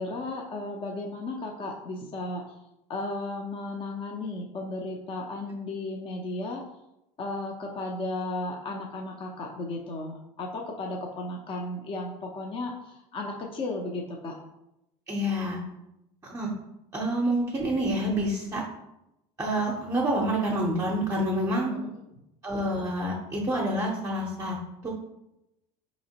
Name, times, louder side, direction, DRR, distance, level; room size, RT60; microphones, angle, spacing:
voice 1, 0.0-2.4 2.9-6.6 7.2-14.4 21.7-21.9, left 2 dB, 35° left, 0 dB, 0.6 m, -34 dB
voice 2, 15.1-15.6 16.2-16.5 16.9-18.6 19.4-21.7 22.4-24.6 24.8-24.9, right 1 dB, 20° right, -3 dB, 0.6 m, -27 dB
4.1 x 2.9 x 2.8 m, 0.88 s
supercardioid pair, 100°, 16 cm